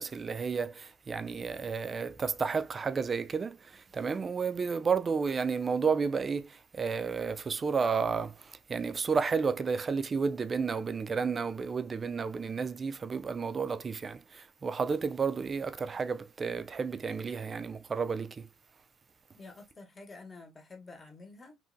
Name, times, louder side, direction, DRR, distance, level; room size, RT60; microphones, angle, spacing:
voice 1, 0.0-18.5, right 5 dB, 30° right, 0.3 m, -32 dB
voice 2, 19.4-21.6, left 3 dB, 25° left, 1.0 m, -49 dB
3.0 x 2.5 x 2.6 m
supercardioid pair, 95°, 0 cm